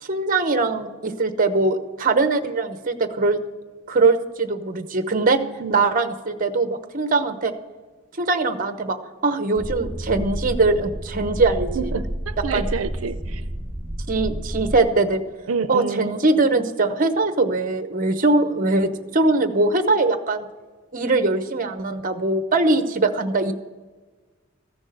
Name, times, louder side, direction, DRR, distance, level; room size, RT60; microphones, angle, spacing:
voice 1, 0.0-3.4 3.9-5.4 5.7-7.5 8.2-9.0 9.2-11.9 12.5-12.7 14.1-15.2 15.7-20.4 20.9-23.5, right 3 dB, 40° right, 9 dB, 0.9 m, -21 dB
sound 1, 9.6-14.8, right 1 dB, 5° right, 1.1 m, -30 dB
voice 2, 11.7-13.4 15.5-16.1, right 5 dB, 85° right, 11 dB, 0.5 m, -28 dB
14.5 x 6.2 x 7.7 m, 1.3 s
head